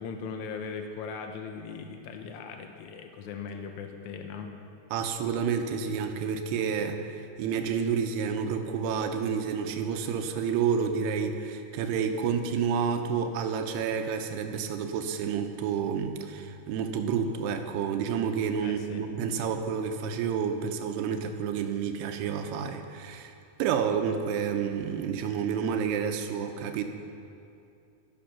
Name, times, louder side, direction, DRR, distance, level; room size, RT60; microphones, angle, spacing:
voice 1, 0.0-4.5 18.6-19.0, left 5 dB, 75° left, 4 dB, 1.7 m, -39 dB
voice 2, 4.9-23.3 23.6-26.8, right 7 dB, 90° right, 5 dB, 3.0 m, -29 dB
16.0 x 12.5 x 5.9 m, 2.6 s
omnidirectional pair, 4.6 m